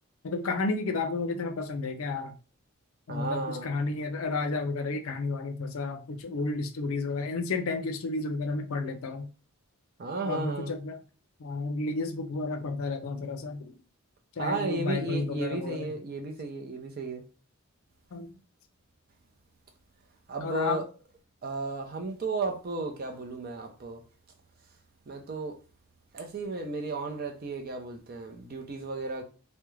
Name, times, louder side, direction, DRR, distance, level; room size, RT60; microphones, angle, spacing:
voice 1, 0.2-2.3 3.1-9.3 10.2-11.0 11.4-13.7 14.4-15.9 18.1-18.3 20.4-20.8, left 3 dB, 65° left, 0.4 m, -32 dB
voice 2, 3.1-3.8 10.0-10.7 14.4-17.2 20.3-20.8 21.4-24.0 25.1-25.6 26.1-29.2, right 3 dB, 45° right, 0.5 m, -34 dB
2.3 x 2.1 x 3.0 m
head